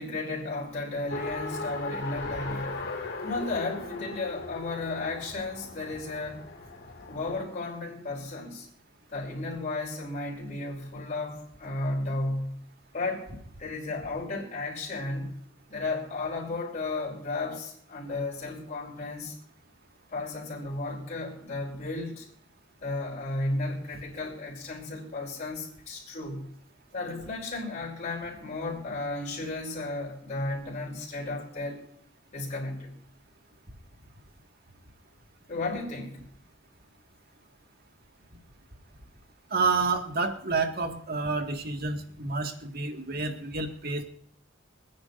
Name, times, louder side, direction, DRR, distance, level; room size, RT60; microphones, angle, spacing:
voice 1, 0.0-2.8 3.2-6.5 7.1-8.7 9.1-12.6 12.9-13.3 13.6-15.4 15.7-19.4 20.1-22.3 22.8-26.5 26.9-31.8 32.3-32.9 35.5-36.2, left 2 dB, 40° left, -4 dB, 4.6 m, -34 dB
Race car auto racing, 1.1-7.4, left 2 dB, 60° left, 2.1 m, -38 dB
voice 2, 39.5-44.0, right 4 dB, 55° right, 5 dB, 1.9 m, -29 dB
26.5 x 9.7 x 2.6 m, 0.62 s
head